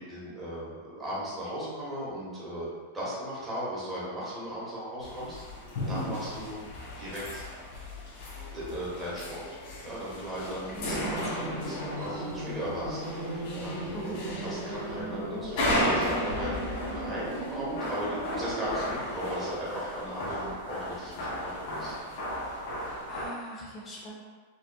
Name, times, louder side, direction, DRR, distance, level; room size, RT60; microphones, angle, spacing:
voice 1, 0.0-5.4 5.9-6.5 7.0-7.4 8.5-22.0, equal, 10° right, -8 dB, 1.2 m, -37 dB
sound 1, 5.0-23.3, left 1 dB, 60° left, 1.4 m, -35 dB
voice 2, 10.7-11.2 11.5-11.7 13.9-14.2 22.7-24.1, right 1 dB, 20° left, -4 dB, 0.9 m, -41 dB
sound 2, 10.8-18.7, right 1 dB, 35° right, 1.2 m, -37 dB
5.1 x 2.5 x 2.3 m, 1.5 s
supercardioid pair, 150°, 0 cm